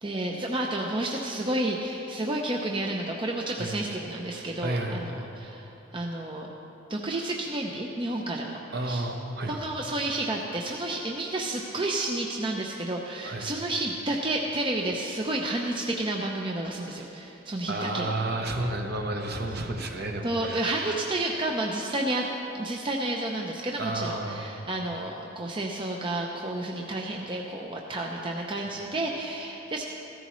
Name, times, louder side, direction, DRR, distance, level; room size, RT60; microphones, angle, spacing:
voice 1, 0.0-6.5 6.9-9.1 9.5-18.1 20.2-22.3 22.5-29.8, right 1 dB, 25° right, 0 dB, 0.6 m, -31 dB
voice 2, 4.6-5.0 8.7-9.7 13.2-13.5 17.7-20.8 23.8-24.4 27.3-27.4, right 2 dB, 50° right, 3 dB, 1.0 m, -31 dB
15.5 x 14.0 x 3.1 m, 3.0 s
head